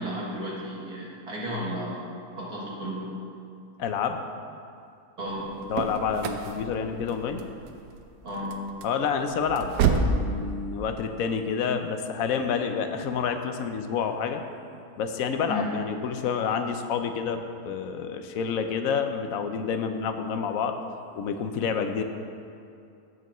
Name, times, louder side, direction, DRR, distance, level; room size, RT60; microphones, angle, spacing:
voice 1, 0.0-3.0 5.2-5.5 8.2-8.6 15.5-15.7, equal, 70° right, -5 dB, 2.5 m, -33 dB
voice 2, 3.8-4.2 5.7-7.5 8.8-14.4 15.0-20.7 21.2-22.0, left 6 dB, 70° left, 7 dB, 1.0 m, -28 dB
sound 1, 5.3-10.3, right 5 dB, 90° right, 1.2 m, -29 dB
14.5 x 6.8 x 3.0 m, 2.5 s
omnidirectional pair, 1.7 m